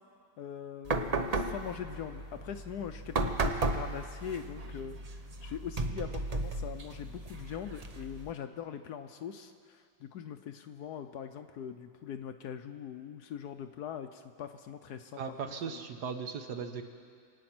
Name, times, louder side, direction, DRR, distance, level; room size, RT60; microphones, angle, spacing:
voice 1, 0.4-5.0 5.4-15.8, left 8 dB, 70° left, 8 dB, 1.1 m, -42 dB
sound 1, 0.8-8.3, right 2 dB, 85° right, 0.3 m, -35 dB
voice 2, 15.2-16.8, right 6 dB, 65° right, 7 dB, 1.4 m, -38 dB
26.0 x 9.2 x 6.0 m, 2.2 s
omnidirectional pair, 2.0 m